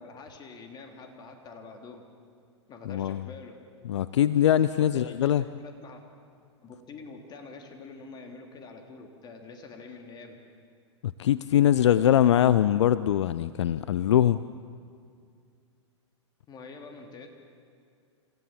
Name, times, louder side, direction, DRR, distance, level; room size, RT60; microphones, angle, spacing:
voice 1, 0.0-2.0 2.7-3.6 4.8-6.0 6.6-10.4 16.5-17.3, left 4 dB, 25° left, 3 dB, 3.2 m, -45 dB
voice 2, 2.9-3.2 3.8-5.4 11.0-14.5, left 11 dB, 70° left, 16 dB, 0.6 m, -22 dB
27.5 x 15.5 x 7.6 m, 2.3 s
hypercardioid pair, 110°, 15 cm